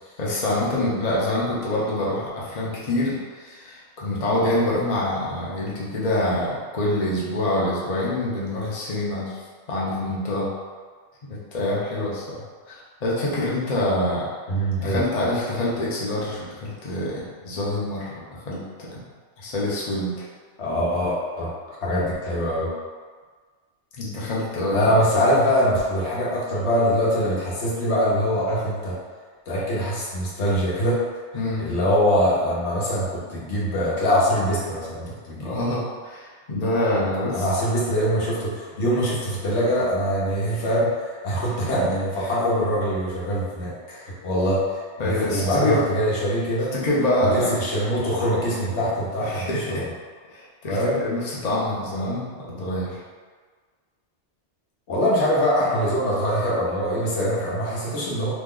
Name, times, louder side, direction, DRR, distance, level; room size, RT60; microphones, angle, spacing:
voice 1, 0.2-9.3 9.7-10.5 11.2-12.2 12.7-14.3 14.8-19.1 19.4-20.3 24.0-25.0 31.3-31.7 35.4-37.5 45.0-45.8 46.7-47.5 49.2-49.8 50.3-53.0, left 1 dB, 40° left, -6 dB, 0.7 m, -26 dB
voice 2, 14.5-15.0 20.6-21.5 21.8-22.7 24.7-29.0 29.5-31.0 31.6-35.5 37.3-46.7 47.2-49.8 50.6-51.0 54.9-58.3, equal, 75° left, -6 dB, 1.1 m, -23 dB
3.0 x 2.1 x 3.6 m, 1.5 s
omnidirectional pair, 1.2 m